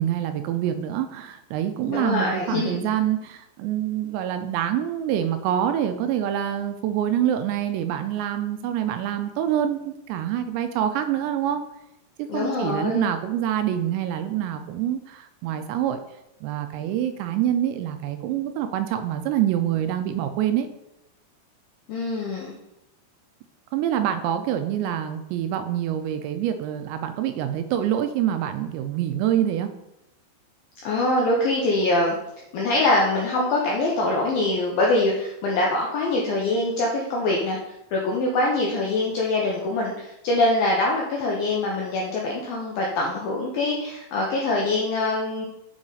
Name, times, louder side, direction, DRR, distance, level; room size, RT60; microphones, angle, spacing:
voice 1, 0.0-11.6 12.2-16.0 16.4-20.7 23.7-29.7, right 10 dB, 85° right, 8 dB, 2.6 m, -26 dB
voice 2, 1.9-2.9 12.3-13.1 21.9-22.5 30.8-32.2 32.5-37.6 37.9-45.5, left 2 dB, 80° left, -2 dB, 2.1 m, -24 dB
7.4 x 4.8 x 3.9 m, 0.86 s
omnidirectional pair, 5.2 m